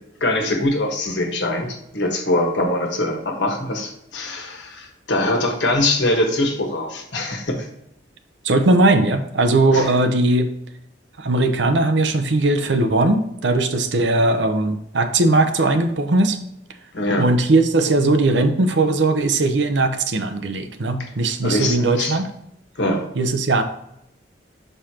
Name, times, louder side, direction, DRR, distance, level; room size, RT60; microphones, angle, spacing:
voice 1, 0.2-7.7 9.7-9.8 16.9-17.3 21.4-22.2 22.8-23.0, left 1 dB, 85° left, 2 dB, 1.4 m, -22 dB
voice 2, 8.4-10.5 11.2-16.4 17.2-22.2 23.2-23.6, right 2 dB, 85° right, 8 dB, 0.7 m, -19 dB
6.3 x 5.5 x 2.9 m, 0.80 s
head